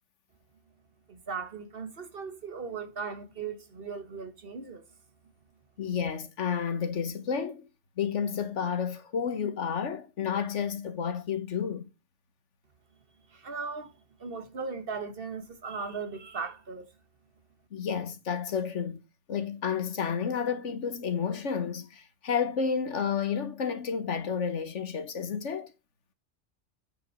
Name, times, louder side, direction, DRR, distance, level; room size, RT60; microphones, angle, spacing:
voice 1, 1.1-4.8 13.3-13.9 14.2-16.9, right 5 dB, 50° right, 1.3 m, -38 dB
voice 2, 5.8-7.7 8.0-11.9 17.7-19.0 19.3-25.7, left 7 dB, 80° left, 1.5 m, -31 dB
9.0 x 5.3 x 4.4 m
omnidirectional pair, 1.2 m